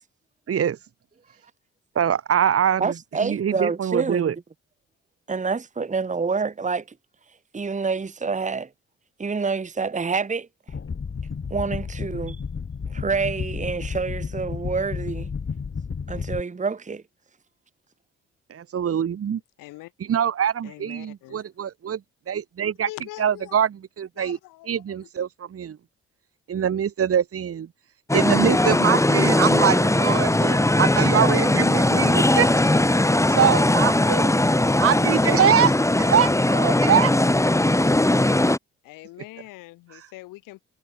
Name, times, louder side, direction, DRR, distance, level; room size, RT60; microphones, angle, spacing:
voice 1, 0.5-0.8 1.9-2.9 3.2-4.3 18.5-19.4 20.1-22.0 22.3-22.9 23.2-24.4 24.7-25.8 26.5-27.7 28.1-32.6 33.3-34.3 34.8-35.7 36.0-37.1 39.9-40.1, right 8 dB, 45° right, 1.3 m, -23 dB
voice 2, 2.8-4.3 5.3-6.8 7.5-8.7 9.2-10.5 11.5-12.4 12.9-15.3 16.1-17.0, right 4 dB, 20° right, 1.3 m, -27 dB
Heavy Tribal Beat, 10.7-16.4, left 5 dB, 40° left, 4.1 m, -32 dB
voice 3, 19.6-19.9 20.6-21.5 22.8-23.6 24.2-25.1 38.8-40.6, left 19 dB, 75° left, 3.7 m, -43 dB
sound 1, 28.1-38.6, left 1 dB, 10° left, 2.0 m, -19 dB
hypercardioid pair, 45°, 32 cm